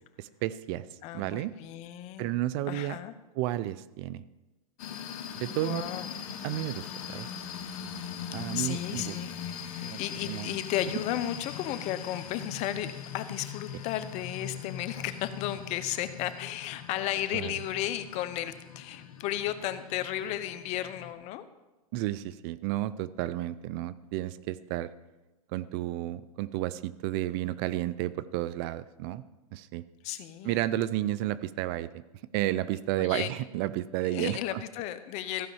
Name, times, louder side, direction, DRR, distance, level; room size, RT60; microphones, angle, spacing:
voice 1, 0.2-0.8 1.1-1.5 2.2-3.0 3.4-4.2 5.3-5.8 6.4-7.3 8.3-9.2 9.8-10.6 17.3-17.5 21.9-24.9 25.5-29.2 29.5-29.8 30.4-31.9 32.3-34.6, right 14 dB, 40° right, 16 dB, 0.5 m, -32 dB
voice 2, 1.0-2.3 2.7-3.1 5.5-6.1 8.5-9.6 9.8-21.4 30.0-30.6 33.0-33.3 34.0-35.5, left 12 dB, 35° left, 12 dB, 0.8 m, -34 dB
sound 1, 4.8-21.1, left 8 dB, 65° left, 1.4 m, -41 dB
15.0 x 5.3 x 7.1 m, 1.1 s
hypercardioid pair, 130°, 19 cm